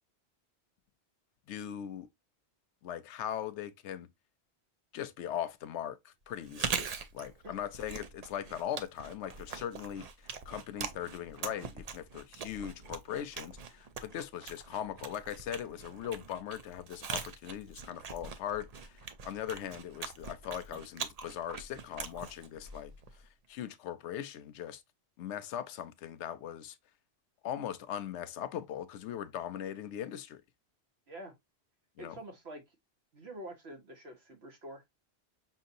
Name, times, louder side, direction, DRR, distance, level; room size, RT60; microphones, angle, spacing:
voice 1, 1.5-2.1 2.8-4.1 4.9-6.9 7.1-10.1 10.5-18.9 19.3-22.9 23.5-24.8 25.2-26.8 27.4-30.4 32.0-32.2, left 10 dB, 85° left, 0.9 m, -39 dB
Chewing mastication, 6.4-23.2, right 5 dB, 50° right, 0.5 m, -42 dB
voice 2, 32.0-32.6 33.1-34.8, right 1 dB, 65° right, 1.4 m, -46 dB
5.7 x 2.8 x 2.5 m
omnidirectional pair, 1.2 m